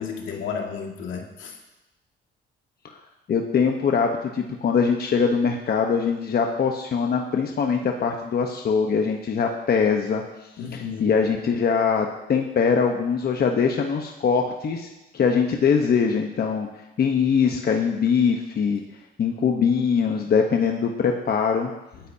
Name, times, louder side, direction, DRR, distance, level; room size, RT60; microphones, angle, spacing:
voice 1, 0.0-1.6 10.6-11.2, left 6 dB, 80° left, 1 dB, 2.2 m, -32 dB
voice 2, 3.3-16.7 17.0-18.8 19.2-21.7, left 6 dB, 50° left, 3 dB, 1.1 m, -22 dB
20.5 x 10.0 x 2.9 m, 1.0 s
cardioid pair, 90°, 20 cm